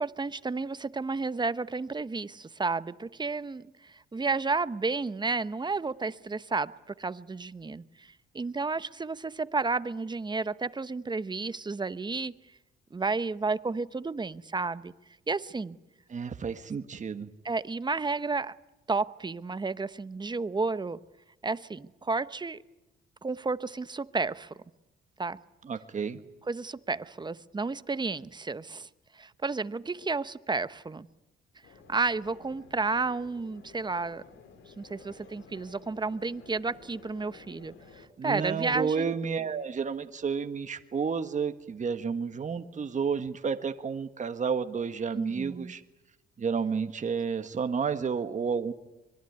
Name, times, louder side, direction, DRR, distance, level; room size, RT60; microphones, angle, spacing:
voice 1, 0.0-12.3 12.9-14.9 15.3-15.8 17.4-18.6 18.9-21.0 21.4-22.6 23.2-24.5 25.2-25.4 26.5-28.9 29.1-31.1 31.9-34.2 34.8-39.1 45.1-45.7, right 4 dB, 20° right, 0.9 m, -32 dB
voice 2, 16.1-17.3 25.6-26.2 38.2-45.8 46.4-48.7, right 6 dB, 40° right, 1.5 m, -31 dB
sound 1, 31.6-38.1, left 5 dB, 75° left, 4.6 m, -53 dB
25.0 x 22.5 x 9.6 m
cardioid pair, 90°, 20 cm